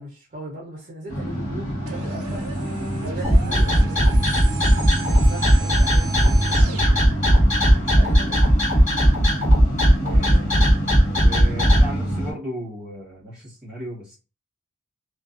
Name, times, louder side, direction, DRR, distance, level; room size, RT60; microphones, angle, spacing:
voice 1, 0.0-2.5 3.0-4.1 4.6-6.8 7.9-8.5 10.0-10.7, right 1 dB, 35° right, 0.6 m, -39 dB
sound 1, 1.1-12.3, right 1 dB, 60° left, 1.0 m, -28 dB
sound 2, 1.8-7.0, right 5 dB, 85° right, 0.6 m, -37 dB
sound 3, 3.2-11.8, equal, 35° left, 1.3 m, -16 dB
voice 2, 3.5-3.9 7.6-8.0 10.1-10.6 11.1-14.2, right 1 dB, 5° right, 1.1 m, -36 dB
2.4 x 2.2 x 2.4 m
head